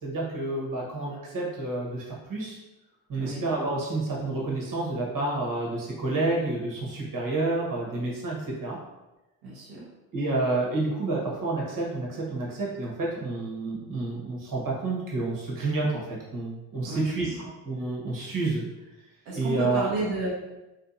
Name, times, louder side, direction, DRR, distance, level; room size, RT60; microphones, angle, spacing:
voice 1, 0.0-2.6 3.1-8.8 10.1-17.4 17.6-18.6 19.3-19.9, right 2 dB, 45° right, -3 dB, 1.3 m, -29 dB
voice 2, 9.4-9.8 16.8-17.1 17.4-17.5 19.3-20.3, right 3 dB, 85° right, -6 dB, 0.9 m, -32 dB
3.2 x 2.9 x 2.6 m, 1.0 s
hypercardioid pair, 50°, 47 cm